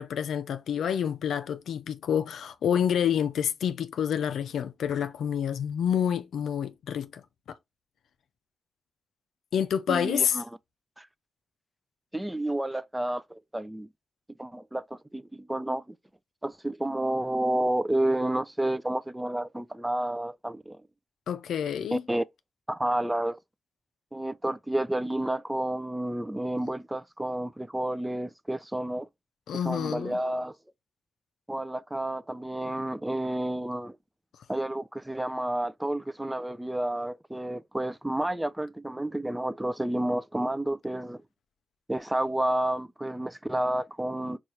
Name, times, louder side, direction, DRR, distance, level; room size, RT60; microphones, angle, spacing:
voice 1, 0.0-7.2 9.5-10.4 21.3-22.0 29.5-30.2, left 8 dB, 85° left, 0.4 m, -28 dB
voice 2, 9.9-10.5 11.0-11.1 12.1-13.9 14.4-16.0 16.4-20.8 21.9-22.2 22.7-23.4 24.1-29.1 29.6-30.5 31.5-34.0 34.5-41.2 41.9-44.4, right 1 dB, 10° right, 0.3 m, -30 dB
4.1 x 2.4 x 3.0 m
cardioid pair, 60°, 0 cm